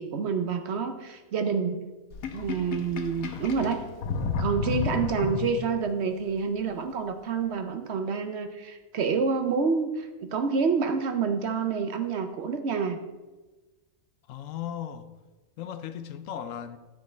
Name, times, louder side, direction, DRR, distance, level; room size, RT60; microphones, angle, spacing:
voice 1, 0.0-1.8 2.3-3.8 4.4-13.0, right 5 dB, 60° right, 0.8 m, -28 dB
Sink (filling or washing), 2.1-5.9, left 5 dB, 90° left, 1.3 m, -32 dB
voice 2, 14.3-15.1 15.6-16.8, left 9 dB, 75° left, 1.0 m, -36 dB
11.5 x 6.3 x 4.3 m
omnidirectional pair, 1.4 m